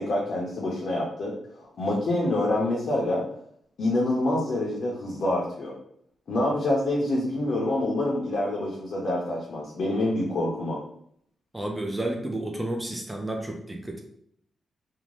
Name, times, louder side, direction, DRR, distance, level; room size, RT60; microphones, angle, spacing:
voice 1, 0.0-3.3 3.8-5.7 6.3-10.8, left 1 dB, 60° left, -4 dB, 0.6 m, -26 dB
voice 2, 11.5-14.0, right 1 dB, 10° right, 1 dB, 0.4 m, -31 dB
2.5 x 2.1 x 3.1 m, 0.66 s
wide cardioid pair, 140°, 0 cm